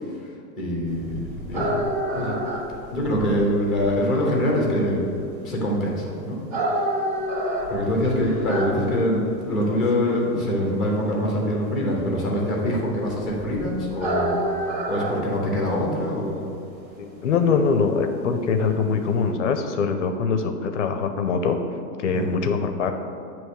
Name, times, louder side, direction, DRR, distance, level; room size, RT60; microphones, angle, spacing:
voice 1, 0.6-1.8 2.1-2.4 2.9-5.1 5.4-6.4 7.7-14.4 14.9-16.5 22.1-22.4, left 1 dB, ahead, -2 dB, 0.8 m, -24 dB
sound 1, 0.9-19.3, right 1 dB, 50° right, 1.7 m, -31 dB
voice 2, 17.0-21.6 22.0-22.9, left 5 dB, 45° left, 7 dB, 0.6 m, -23 dB
9.0 x 3.1 x 6.4 m, 2.5 s
supercardioid pair, 170°, 50 cm